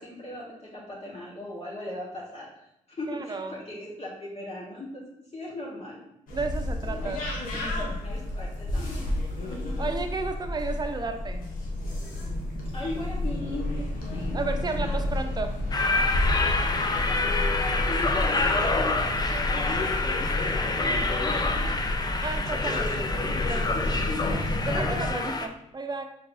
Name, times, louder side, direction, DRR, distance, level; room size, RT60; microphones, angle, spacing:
voice 1, 0.0-2.5 3.0-5.0 5.3-6.0 6.8-7.1 8.0-9.1 9.4-9.9 12.7-13.7 14.1-14.4 14.7-15.2 16.9-19.0 19.3-21.8 23.7-24.3, left 2 dB, 45° left, -5 dB, 1.2 m, -38 dB
voice 2, 3.1-3.5 6.3-8.0 9.8-11.5 14.3-15.6 22.2-23.9 24.2-26.0, right 3 dB, 30° right, 6 dB, 0.6 m, -33 dB
sound 1, 6.3-25.1, left 1 dB, 90° left, 0.7 m, -30 dB
sound 2, 15.7-25.5, left 3 dB, 30° left, 0.4 m, -27 dB
4.6 x 3.4 x 2.6 m, 0.83 s
supercardioid pair, 50°, 14 cm